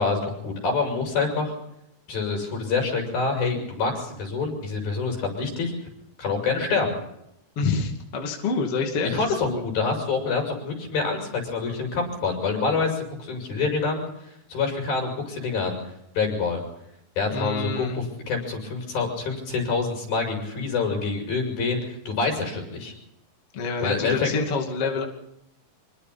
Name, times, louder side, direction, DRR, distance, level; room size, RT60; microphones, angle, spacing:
voice 1, 0.0-1.5 2.1-5.7 6.2-7.0 9.1-14.0 14.5-15.8 16.2-16.6 17.2-22.9 23.8-24.3, left 4 dB, 80° left, 2 dB, 8.9 m, -26 dB
voice 2, 7.6-9.2 9.5-9.6 17.3-18.0 23.5-25.0, left 4 dB, 45° left, 2 dB, 3.2 m, -27 dB
26.0 x 24.0 x 4.3 m, 0.80 s
omnidirectional pair, 4.1 m